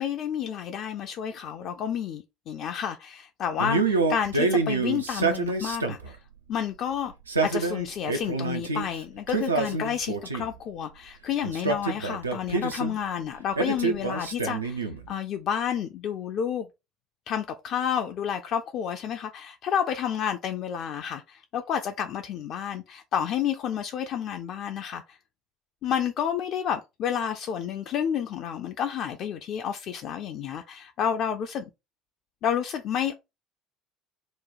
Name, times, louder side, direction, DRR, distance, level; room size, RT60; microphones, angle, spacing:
voice 1, 0.0-6.2 6.5-7.1 7.4-16.7 17.3-25.2 25.8-31.6 32.4-33.1, left 8 dB, 45° left, 0.4 m, -30 dB
Male speech man speaking, 3.6-6.2 7.1-8.9 9.3-10.6 11.4-13.0 13.6-15.1, right 4 dB, 80° right, 0.4 m, -27 dB
3.0 x 2.1 x 3.9 m
figure-of-eight pair, 60°, 0 cm